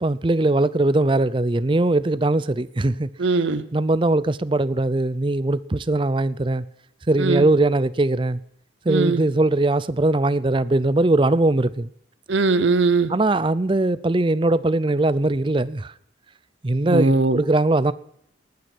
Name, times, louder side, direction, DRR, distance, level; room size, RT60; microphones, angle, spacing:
voice 1, 0.0-3.1 3.7-6.6 7.1-8.4 8.8-11.9 13.1-15.9 16.6-17.9, right 2 dB, 25° right, 0.5 m, -20 dB
voice 2, 3.2-3.6 7.2-7.5 8.9-9.2 12.3-13.1 16.8-17.4, right 3 dB, 70° right, 0.8 m, -20 dB
19.5 x 9.6 x 6.1 m
head